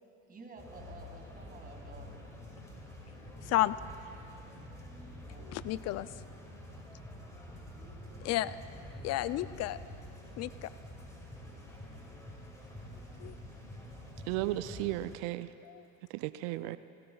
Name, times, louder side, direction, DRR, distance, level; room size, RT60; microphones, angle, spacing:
voice 1, 0.3-2.3 5.2-5.8 7.7-8.4, right 3 dB, 20° right, 2 dB, 2.0 m, -52 dB
sound 1, 0.6-15.2, left 1 dB, 10° left, 2.3 m, -48 dB
voice 2, 3.4-3.8 5.4-6.1 8.2-8.5 9.0-9.8 10.4-10.7 13.2-13.3 15.6-15.9 16.6-16.8, left 15 dB, 40° left, 16 dB, 0.4 m, -32 dB
voice 3, 14.3-15.5 16.1-16.8, right 16 dB, 65° right, 13 dB, 0.5 m, -34 dB
17.5 x 16.0 x 2.3 m, 2.8 s
supercardioid pair, 95°, 39 cm